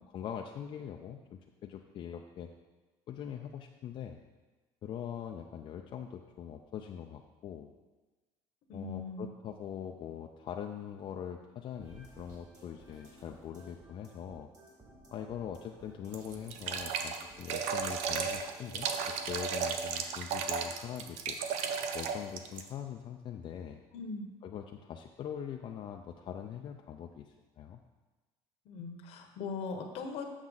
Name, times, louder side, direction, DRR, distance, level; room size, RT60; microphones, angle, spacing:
voice 1, 0.1-2.5 3.1-4.2 4.8-7.7 8.7-14.5 15.1-18.9 19.3-21.4 21.9-23.8 24.4-27.8, left 9 dB, 50° left, 3 dB, 0.5 m, -42 dB
voice 2, 8.7-9.3 23.9-24.3 28.7-30.2, left 4 dB, 70° left, 5 dB, 1.1 m, -40 dB
sound 1, 11.8-19.8, right 2 dB, 35° right, 2.7 m, -57 dB
sound 2, 16.1-22.7, right 6 dB, 80° right, 0.6 m, -34 dB
7.4 x 6.2 x 4.0 m, 1.2 s
supercardioid pair, 95°, 11 cm